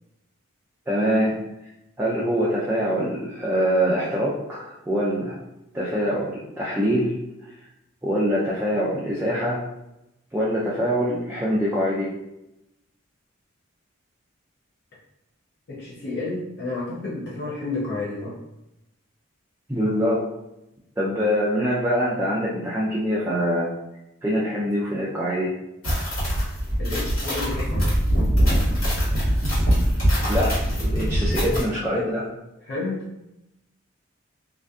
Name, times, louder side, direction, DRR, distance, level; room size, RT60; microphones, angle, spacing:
voice 1, 0.9-1.4 2.0-5.3 5.7-7.1 8.0-9.6 10.3-12.1 19.7-20.2 21.0-23.7 24.2-25.5 30.3-32.3, equal, 10° right, -7 dB, 0.3 m, -24 dB
voice 2, 15.7-18.4 26.8-28.0 32.6-33.1, left 2 dB, 50° left, -6 dB, 0.5 m, -31 dB
sound 1, 25.8-31.6, equal, 80° left, 1.4 m, -22 dB
2.5 x 2.4 x 2.3 m, 0.90 s
head